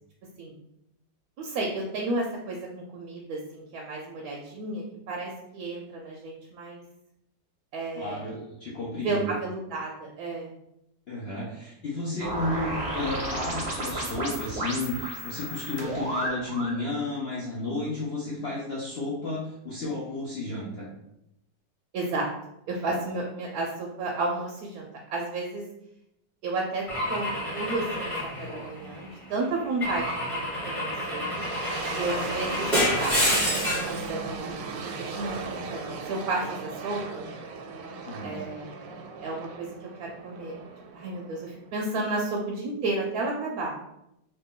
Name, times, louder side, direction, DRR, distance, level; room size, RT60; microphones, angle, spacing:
voice 1, 1.4-6.8 7.7-8.3 9.0-10.5 21.9-22.3 22.7-25.6 26.4-26.8 27.1-28.1 28.4-30.1 30.3-31.2 31.9-34.5 35.1-37.3 38.2-39.7 40.0-40.5 40.9-43.7, right 2 dB, 70° right, 0 dB, 0.9 m, -32 dB
voice 2, 7.9-9.3 11.1-20.9 38.1-38.4, left 2 dB, 60° left, -6 dB, 0.6 m, -32 dB
sound 1, 12.2-16.8, right 1 dB, 40° right, 0.6 m, -32 dB
Car / Engine / Glass, 26.9-29.1 29.8-34.0, left 1 dB, 20° left, 1.3 m, -28 dB
sound 2, 31.0-41.9, right 4 dB, 90° right, 1.3 m, -37 dB
2.9 x 2.7 x 3.6 m, 0.83 s
omnidirectional pair, 1.9 m